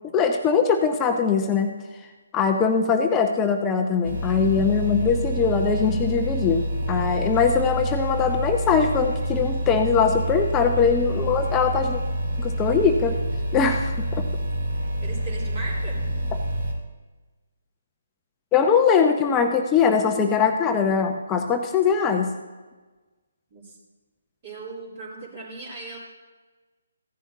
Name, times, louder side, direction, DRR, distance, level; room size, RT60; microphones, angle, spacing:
voice 1, 0.1-1.7 2.3-12.0 12.4-13.2 13.5-14.3 18.5-22.3, left 6 dB, 15° left, 4 dB, 0.7 m, -21 dB
sound 1, 4.0-16.7, right 1 dB, 60° right, 3.1 m, -27 dB
voice 2, 15.0-16.0 23.5-23.8 24.4-26.0, right 3 dB, 35° right, -5 dB, 3.3 m, -38 dB
15.5 x 10.5 x 2.8 m, 1.3 s
figure-of-eight pair, 140°, 0 cm